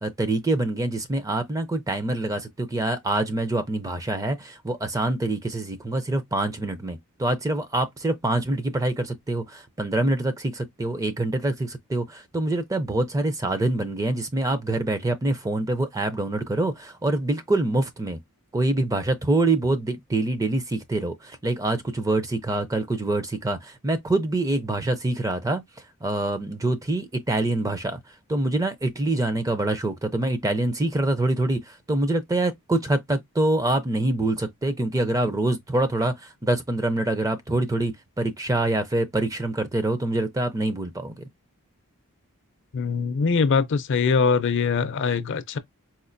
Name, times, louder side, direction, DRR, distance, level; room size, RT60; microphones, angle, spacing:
voice 1, 0.0-18.2 18.5-25.6 26.0-28.0 28.3-41.2, right 2 dB, 15° right, 0.4 m, -25 dB
voice 2, 42.7-45.6, left 5 dB, 55° left, 0.4 m, -22 dB
4.2 x 2.1 x 2.5 m
head